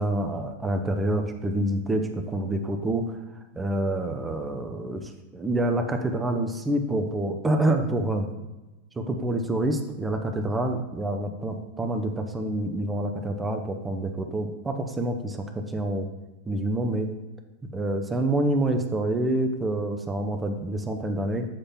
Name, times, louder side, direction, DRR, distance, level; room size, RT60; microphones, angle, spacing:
voice 1, 0.0-3.2 3.5-8.3 9.0-16.1 16.4-17.1 17.7-21.5, right 1 dB, 10° right, 5 dB, 0.7 m, -27 dB
7.4 x 3.3 x 5.8 m, 1.1 s
figure-of-eight pair, 90°, 0 cm